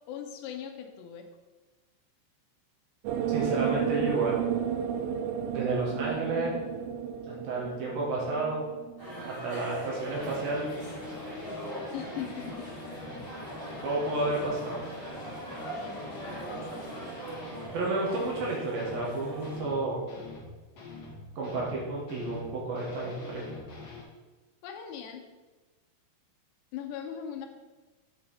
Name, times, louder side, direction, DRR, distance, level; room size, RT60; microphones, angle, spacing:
voice 1, 0.1-1.3 11.9-12.7 15.8-17.0 24.6-25.3 26.7-27.5, left 8 dB, 80° left, 4 dB, 2.9 m, -40 dB
sound 1, 3.1-9.4, right 9 dB, 85° right, 2.9 m, -32 dB
voice 2, 3.3-4.4 5.5-6.5 7.3-8.6 9.3-10.7 13.8-14.8 17.7-20.0 21.4-23.5, right 2 dB, 65° right, -3 dB, 2.9 m, -31 dB
sound 2, 9.0-19.6, right 1 dB, 20° right, 1.5 m, -41 dB
sound 3, 10.1-17.8 18.1-18.5 18.7-21.8 22.1-24.0, left 3 dB, 60° left, 1.6 m, -45 dB
7.9 x 5.6 x 4.2 m, 1.3 s
omnidirectional pair, 5.0 m